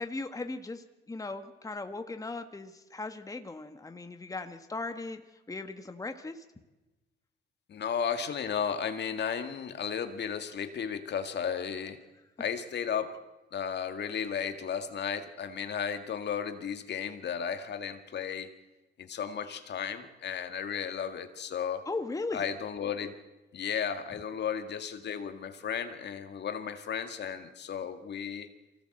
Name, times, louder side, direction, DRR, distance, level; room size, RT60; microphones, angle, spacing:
voice 1, 0.0-5.2 5.5-6.4 21.8-22.5, left 3 dB, 15° left, 7 dB, 1.5 m, -38 dB
voice 2, 7.7-12.0 12.4-13.2 13.5-18.5 19.0-21.9 22.3-23.2 23.5-28.5, left 7 dB, 60° left, 8 dB, 2.0 m, -34 dB
24.0 x 17.0 x 7.9 m, 1.1 s
cardioid pair, 90°, 20 cm